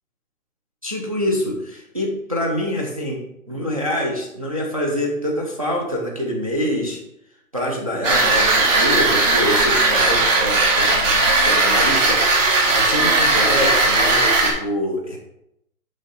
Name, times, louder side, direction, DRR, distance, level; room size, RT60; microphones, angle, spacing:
voice 1, 0.8-3.2 3.5-7.0 7.5-15.2, equal, 25° right, -3 dB, 0.5 m, -25 dB
sound 1, 8.0-14.5, right 2 dB, 55° right, 2.1 m, -17 dB
6.3 x 5.3 x 4.0 m, 0.81 s
hypercardioid pair, 170°, 45 cm